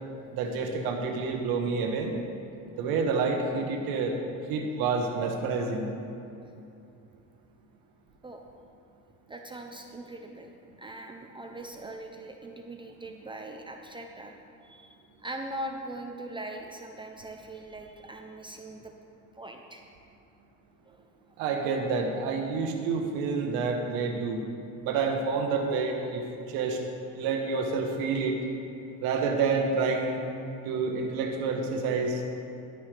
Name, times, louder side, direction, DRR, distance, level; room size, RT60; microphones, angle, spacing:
voice 1, 0.3-2.1 2.8-4.2 4.5-5.9 21.4-24.4 24.8-26.2 26.5-26.8 27.1-28.4 29.0-30.2 30.6-32.2, right 4 dB, 85° right, 1 dB, 1.1 m, -28 dB
voice 2, 9.3-14.3 14.6-15.0 15.2-18.9 19.4-19.8 20.8-21.0, right 1 dB, 15° right, 2 dB, 0.5 m, -41 dB
11.0 x 9.5 x 3.3 m, 2.7 s
cardioid pair, 130°, 34 cm